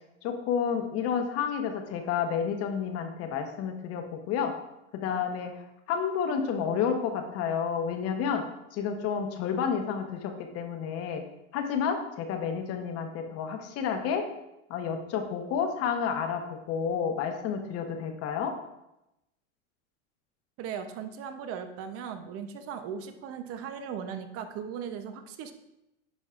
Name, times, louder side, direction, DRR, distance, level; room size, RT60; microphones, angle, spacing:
voice 1, 0.2-4.6 4.9-5.5 5.9-8.5 8.7-11.2 11.5-14.3 14.7-18.5, left 7 dB, 40° left, 5 dB, 1.0 m, -30 dB
voice 2, 20.6-25.5, right 7 dB, 40° right, 8 dB, 0.8 m, -38 dB
10.0 x 5.4 x 2.5 m, 0.90 s
hypercardioid pair, 120°, 37 cm